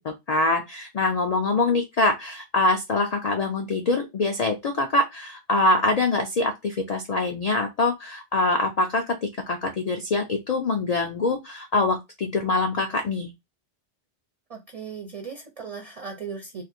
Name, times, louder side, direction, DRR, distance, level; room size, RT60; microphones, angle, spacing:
voice 1, 0.0-13.3, left 2 dB, 90° left, 4 dB, 0.3 m, -24 dB
voice 2, 14.5-16.6, right 5 dB, 50° right, 4 dB, 0.4 m, -37 dB
2.5 x 2.5 x 4.1 m, 0.21 s
omnidirectional pair, 1.2 m